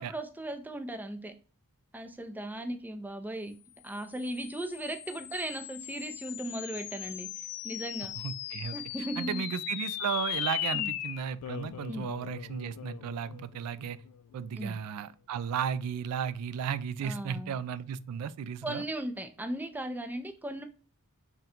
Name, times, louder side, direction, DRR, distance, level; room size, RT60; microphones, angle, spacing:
voice 1, 0.0-1.3 1.9-3.6 3.8-7.3 7.6-8.1 8.7-9.5 10.7-10.9 11.9-12.1 14.6-14.8 17.0-17.6 18.6-20.6, right 1 dB, 10° right, 0.4 m, -37 dB
sound 1, 3.9-14.6, left 12 dB, 70° left, 0.3 m, -39 dB
voice 2, 8.2-8.8 9.2-14.0 14.3-18.8, right 7 dB, 90° right, 0.3 m, -34 dB
3.7 x 2.2 x 4.2 m
head